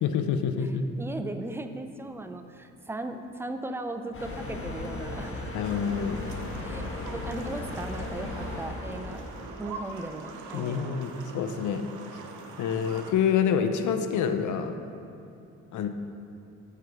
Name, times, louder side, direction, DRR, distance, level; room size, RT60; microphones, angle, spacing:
voice 1, 0.0-0.8 5.5-6.2 10.5-11.9 12.6-14.8 15.7-15.9, left 7 dB, 75° left, 8 dB, 0.7 m, -27 dB
voice 2, 1.0-5.6 6.6-6.8 7.1-9.2 9.6-11.0, right 2 dB, 10° right, 7 dB, 0.5 m, -37 dB
sound 1, 4.1-9.7, left 2 dB, 45° left, 1.3 m, -36 dB
sound 2, 5.6-13.1, right 4 dB, 80° right, 0.9 m, -43 dB
6.6 x 6.6 x 5.2 m, 2.7 s
cardioid pair, 90°, 30 cm